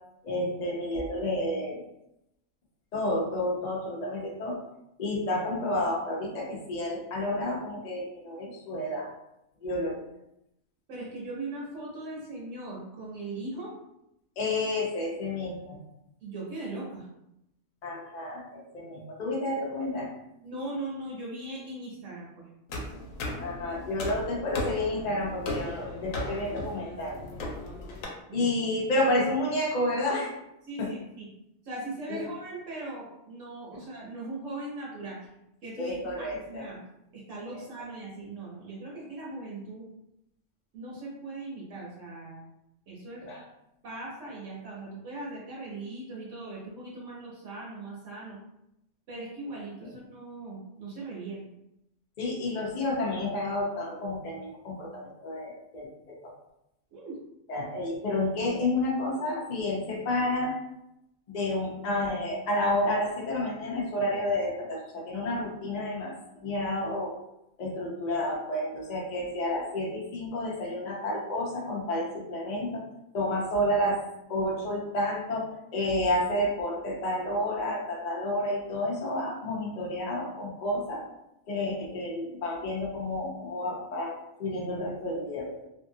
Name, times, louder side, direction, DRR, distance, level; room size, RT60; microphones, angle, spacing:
voice 1, 0.2-1.8 2.9-4.6 5.0-9.1 9.6-10.0 14.4-15.8 17.8-20.1 23.4-27.2 28.3-30.3 30.8-30.9 32.1-32.2 35.8-36.7 37.5-37.6 43.2-43.4 52.2-56.3 57.5-60.5 61.3-67.2 67.6-72.8 73.1-74.0 74.3-81.0 81.5-85.6, left 1 dB, 50° left, -2 dB, 0.5 m, -30 dB
voice 2, 10.9-13.7 16.2-17.0 20.4-22.5 28.3-28.5 30.6-31.3 31.6-35.2 35.6-36.8 37.1-39.8 40.7-42.5 42.9-43.2 43.8-48.4 49.1-51.4 56.9-57.2, right 2 dB, 70° right, -5 dB, 1.1 m, -39 dB
sound 1, 22.7-28.0, left 1 dB, 80° left, 1.0 m, -37 dB
2.6 x 2.4 x 2.6 m, 0.84 s
omnidirectional pair, 1.4 m